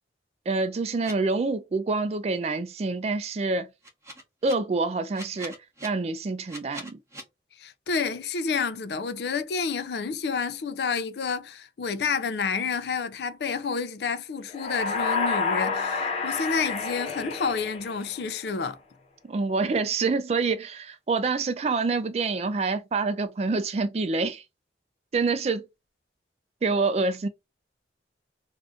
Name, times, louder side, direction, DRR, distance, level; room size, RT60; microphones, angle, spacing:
voice 1, 0.5-3.7 4.4-5.5 5.8-7.0 19.3-24.4 25.1-25.6 26.6-27.3, right 3 dB, 35° right, 0.3 m, -26 dB
sound 1, 1.0-1.1 3.8-4.5 5.1-5.9 6.5-7.2, right 1 dB, 15° right, 0.7 m, -41 dB
voice 2, 7.6-18.8, left 5 dB, 65° left, 0.4 m, -29 dB
sound 2, 14.5-18.4, left 4 dB, 35° left, 0.8 m, -29 dB
2.6 x 2.4 x 3.4 m
head